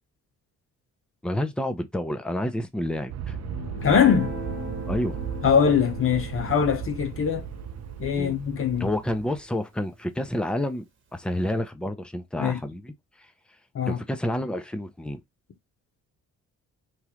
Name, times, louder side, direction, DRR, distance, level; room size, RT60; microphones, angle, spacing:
voice 1, 1.2-3.4 4.9-5.2 8.1-8.4 8.8-10.8 11.1-12.9 13.9-15.2, left 1 dB, 5° left, 0.6 m, -29 dB
sound 1, 3.1-9.0, left 5 dB, 85° left, 0.7 m, -42 dB
Aircraft, 3.1-9.4, right 9 dB, 55° right, 0.6 m, -36 dB
voice 2, 3.8-4.3 5.4-7.4 8.0-8.9 12.4-12.6 13.7-14.0, left 7 dB, 45° left, 0.7 m, -22 dB
Guitar, 3.8-10.4, right 5 dB, 40° right, 1.1 m, -42 dB
3.1 x 2.4 x 2.9 m
cardioid pair, 90°, 30 cm